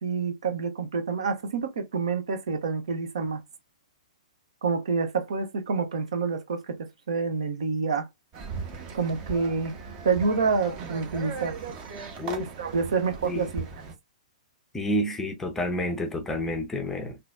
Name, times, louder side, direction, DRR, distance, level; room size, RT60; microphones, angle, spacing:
voice 1, 0.0-3.4 4.6-8.1 8.9-9.7 10.0-11.6 12.4-13.6, right 5 dB, 55° right, 1.0 m, -28 dB
sound 1, 8.3-13.9, right 5 dB, 25° right, 0.9 m, -38 dB
voice 2, 14.7-17.2, left 1 dB, 10° left, 0.6 m, -29 dB
3.9 x 2.7 x 2.4 m
figure-of-eight pair, 115°, 4 cm